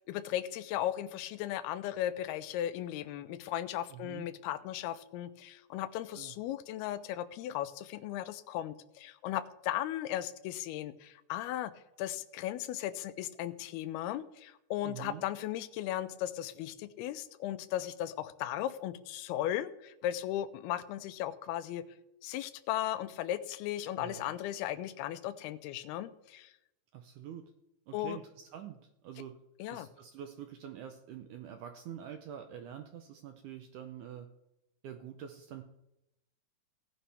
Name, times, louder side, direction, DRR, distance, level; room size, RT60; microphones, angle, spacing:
voice 1, 0.1-11.7 12.0-21.9 22.2-26.5 27.9-28.2 29.6-29.9, left 12 dB, 85° left, 13 dB, 2.6 m, -36 dB
voice 2, 3.9-4.3 6.2-6.4 14.8-15.2 24.0-24.3 26.9-27.5 27.9-29.4 29.7-34.3 34.8-35.6, right 9 dB, 80° right, 6 dB, 1.8 m, -46 dB
17.0 x 10.0 x 3.4 m, 0.87 s
omnidirectional pair, 4.4 m